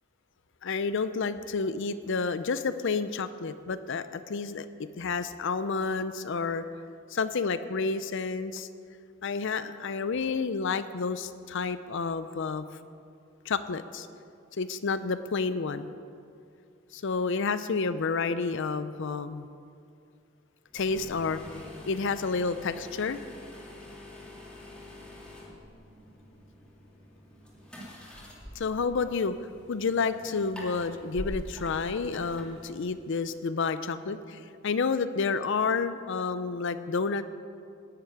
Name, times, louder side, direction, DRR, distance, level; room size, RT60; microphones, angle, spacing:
voice 1, 0.6-6.6 7.1-8.7 9.2-12.6 13.5-14.1 14.5-15.9 16.9-19.5 20.7-21.4 21.9-23.2 28.6-29.4 29.7-37.2, left 4 dB, 65° left, 12 dB, 0.5 m, -30 dB
sound 1, 20.7-33.2, left 1 dB, 5° left, 2.7 m, -45 dB
10.5 x 8.1 x 9.3 m, 2.4 s
head